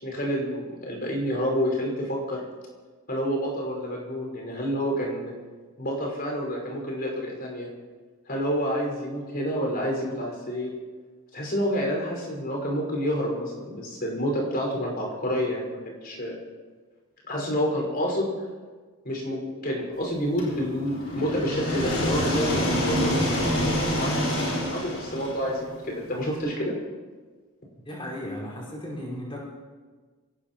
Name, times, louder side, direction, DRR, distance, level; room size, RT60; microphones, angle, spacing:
voice 1, 0.0-2.4 3.1-5.3 5.8-7.7 8.3-10.7 11.3-16.3 17.3-18.3 19.0-26.7, equal, 45° left, -1 dB, 5.7 m, -29 dB
sound 1, 20.4-26.3, equal, 85° left, 6.5 m, -27 dB
voice 2, 27.9-29.4, left 1 dB, 25° left, -4 dB, 5.3 m, -35 dB
25.5 x 18.0 x 3.1 m, 1.4 s
head